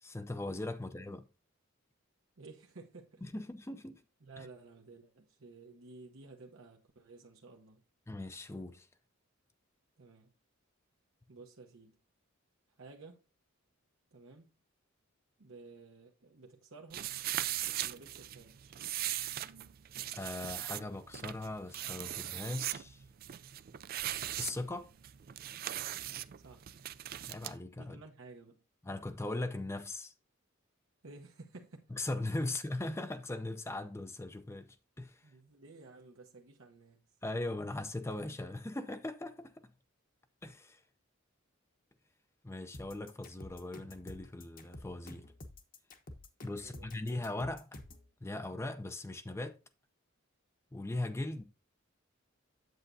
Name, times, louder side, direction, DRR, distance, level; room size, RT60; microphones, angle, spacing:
voice 1, 0.0-1.3 3.2-4.0 4.4-4.5 8.1-8.9 20.1-23.0 24.4-24.9 27.3-28.0 28.8-30.1 32.0-35.2 37.2-39.5 40.4-40.8 42.4-45.3 46.4-47.8 48.2-49.6 50.7-51.4, left 2 dB, 15° left, 0.5 m, -39 dB
voice 2, 2.4-3.2 4.2-7.8 10.0-10.3 11.3-12.0 12.8-13.2 14.1-14.5 15.4-17.1 17.6-18.8 26.4-26.7 27.8-28.6 31.0-31.9 35.2-37.0 46.5-47.0, right 3 dB, 70° right, 0.9 m, -54 dB
sound 1, 16.9-27.5, right 13 dB, 45° right, 0.4 m, -39 dB
sound 2, 42.7-48.1, left 1 dB, 40° left, 1.0 m, -50 dB
8.0 x 7.9 x 2.6 m
head